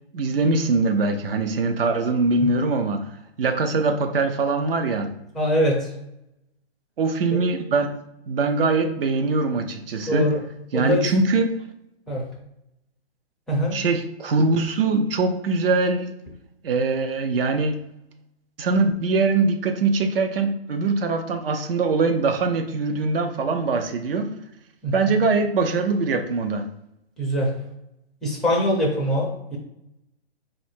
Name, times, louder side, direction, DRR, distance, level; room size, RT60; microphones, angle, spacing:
voice 1, 0.1-3.1 3.4-5.1 7.0-7.9 8.3-10.3 10.7-11.6 13.7-16.2 16.6-17.8 18.6-24.3 24.9-26.7, right 3 dB, 60° right, 0.8 m, -22 dB
voice 2, 5.3-5.9 7.3-7.4 10.1-10.4 10.7-11.1 12.1-12.3 13.5-13.8 24.8-25.1 27.2-27.6 28.2-29.6, equal, ahead, 0.5 m, -23 dB
4.3 x 2.6 x 4.4 m
hypercardioid pair, 140°, 32 cm